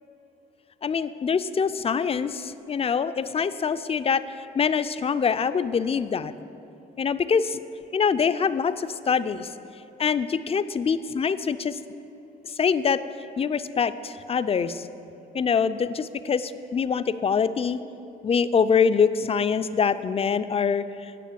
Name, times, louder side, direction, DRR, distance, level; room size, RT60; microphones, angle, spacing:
voice 1, 0.8-6.3 7.0-7.6 7.9-9.5 10.0-11.8 12.6-13.0 13.4-14.9 15.3-17.8 18.2-20.8, left 6 dB, 30° left, 12 dB, 0.4 m, -24 dB
10.0 x 6.7 x 7.4 m, 2.9 s
cardioid pair, 90°, 20 cm